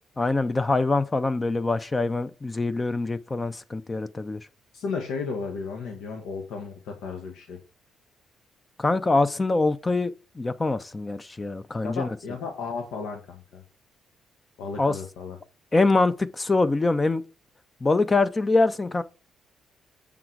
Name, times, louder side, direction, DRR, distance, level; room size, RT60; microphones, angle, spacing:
voice 1, 0.2-4.4 8.8-12.1 14.8-14.9 15.7-17.2 17.8-19.0, left 3 dB, 25° left, 0.5 m, -24 dB
voice 2, 4.7-7.6 11.8-13.6 14.6-15.4, left 5 dB, 85° left, 1.2 m, -34 dB
7.1 x 3.8 x 4.6 m
cardioid pair, 90°, 0 cm